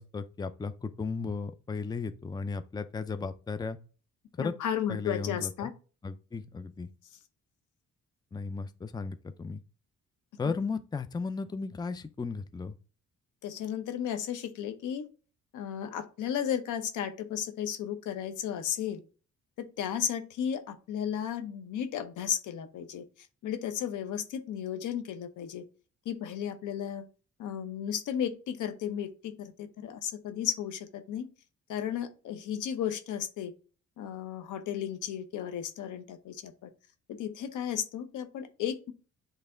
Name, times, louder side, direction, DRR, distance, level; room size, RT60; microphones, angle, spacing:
voice 1, 0.0-3.8 4.4-4.5 4.9-5.7 6.0-6.9 8.3-9.6 10.4-12.7, left 4 dB, 15° left, 0.5 m, -35 dB
voice 2, 4.4-5.7 10.6-10.7 13.4-15.1 15.5-19.0 19.8-23.0 23.4-25.6 26.0-27.0 27.4-31.3 31.7-33.5 34.0-36.7 37.1-38.9, left 9 dB, 80° left, 1.0 m, -34 dB
8.0 x 3.3 x 3.8 m
cardioid pair, 90°, 30 cm